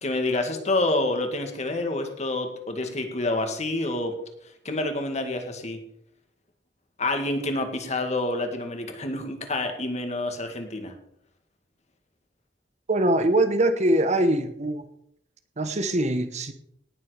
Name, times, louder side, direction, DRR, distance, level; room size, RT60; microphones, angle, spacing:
voice 1, 0.0-4.1 4.6-5.8 7.0-10.9, left 2 dB, 40° left, 5 dB, 2.1 m, -28 dB
voice 2, 12.9-14.8 15.6-16.5, right 1 dB, 40° right, 10 dB, 1.0 m, -23 dB
18.5 x 7.6 x 5.1 m, 0.71 s
head